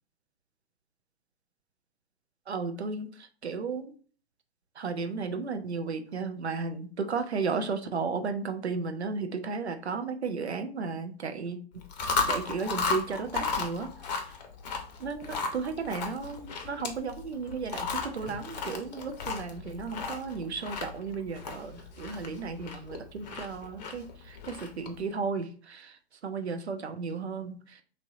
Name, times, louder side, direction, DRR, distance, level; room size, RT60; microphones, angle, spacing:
voice 1, 2.5-3.1 3.4-3.9 4.8-11.6 12.3-13.9 15.0-26.0 26.2-27.6, right 4 dB, 85° right, 7 dB, 0.5 m, -34 dB
Chewing mastication, 11.8-25.0, left 4 dB, 40° left, 0.6 m, -35 dB
3.1 x 2.6 x 2.6 m, 0.43 s
figure-of-eight pair, 110°, 32 cm